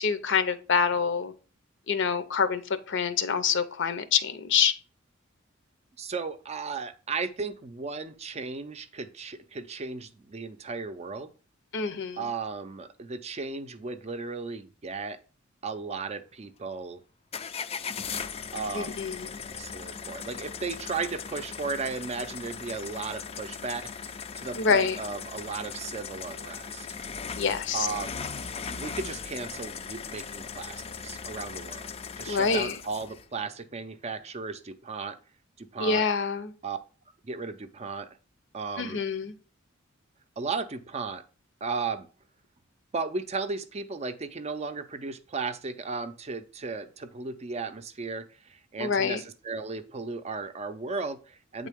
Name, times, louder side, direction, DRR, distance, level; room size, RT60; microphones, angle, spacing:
voice 1, 0.0-1.3 1.9-2.6 2.9-4.7 11.7-12.3 18.7-19.3 24.6-25.0 27.4-27.9 32.3-32.7 35.8-36.5 38.8-39.3 48.8-49.2, left 6 dB, 65° left, 0.6 m, -26 dB
voice 2, 6.0-11.3 12.2-15.2 15.6-17.0 18.5-19.2 19.6-26.9 27.7-28.2 28.7-35.2 35.6-36.1 36.6-36.8 37.2-38.1 38.5-39.0 40.4-41.2 41.6-42.1 42.9-51.7, right 4 dB, 30° right, 0.5 m, -35 dB
sound 1, 17.3-33.2, left 6 dB, 30° left, 0.4 m, -38 dB
8.2 x 3.7 x 3.5 m
head